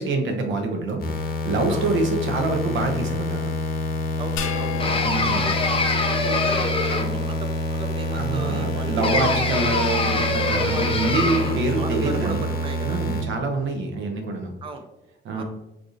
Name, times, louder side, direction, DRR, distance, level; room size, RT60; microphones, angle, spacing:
voice 1, 0.0-3.5 5.0-5.5 8.1-12.5 12.8-14.5 15.2-15.4, right 3 dB, 75° right, 4 dB, 0.7 m, -26 dB
sound 1, 1.0-13.2, left 1 dB, 50° left, 0.8 m, -27 dB
voice 2, 4.2-9.0 10.5-13.0 14.6-14.9 15.3-15.4, right 3 dB, 25° right, 5 dB, 0.4 m, -36 dB
sound 2, 4.4-6.9, left 9 dB, 85° left, 0.5 m, -35 dB
sound 3, 4.8-7.3 9.0-11.7, left 3 dB, 30° left, 0.4 m, -24 dB
4.6 x 2.5 x 2.6 m, 0.95 s
cardioid pair, 90°, 20 cm